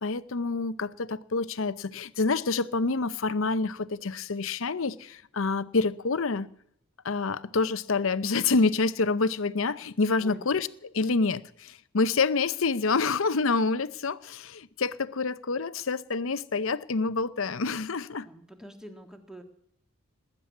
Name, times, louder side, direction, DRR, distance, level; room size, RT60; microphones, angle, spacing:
voice 1, 0.0-6.5 7.0-10.7 10.9-18.3, left 4 dB, 65° left, 0.7 m, -27 dB
voice 2, 18.2-19.4, right 1 dB, 5° right, 1.8 m, -46 dB
20.0 x 7.6 x 9.5 m
head